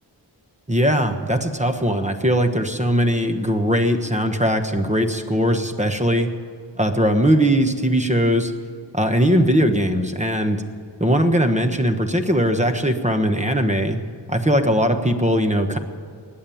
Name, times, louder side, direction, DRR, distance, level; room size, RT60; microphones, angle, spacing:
voice 1, 0.7-6.3 6.8-8.5 8.9-10.6 11.0-14.0 14.3-15.8, equal, 15° right, 6 dB, 1.3 m, -20 dB
20.0 x 7.5 x 8.6 m, 2.4 s
wide cardioid pair, 55°, 42 cm